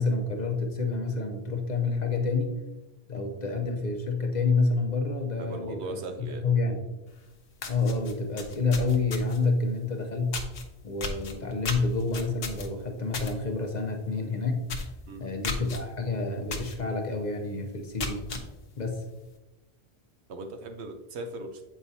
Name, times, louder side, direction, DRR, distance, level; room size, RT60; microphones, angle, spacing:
voice 1, 0.0-2.6 3.1-6.8 7.7-10.4 10.8-14.6 15.2-18.2 18.8-19.0, left 3 dB, 45° left, 3 dB, 0.8 m, -28 dB
voice 2, 5.4-6.4 15.1-15.3 20.3-21.6, right 2 dB, 80° right, 5 dB, 1.0 m, -38 dB
sound 1, 7.1-7.2 7.5-9.5 10.3-10.6 11.0-13.3 13.7-13.9 14.2-14.3 14.6-15.0 15.4-15.8 16.5-16.8 17.2-17.3 17.8-18.4, left 4 dB, 65° left, 1.0 m, -34 dB
7.4 x 4.9 x 2.7 m, 1.1 s
omnidirectional pair, 1.1 m